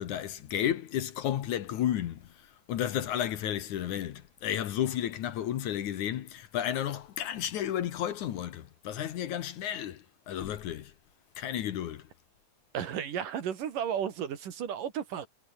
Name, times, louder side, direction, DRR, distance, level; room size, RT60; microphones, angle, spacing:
voice 1, 0.0-10.9 11.4-12.1, left 11 dB, 65° left, 2.5 m, -32 dB
voice 2, 12.7-15.3, right 9 dB, 70° right, 3.7 m, -33 dB
omnidirectional pair, 4.0 m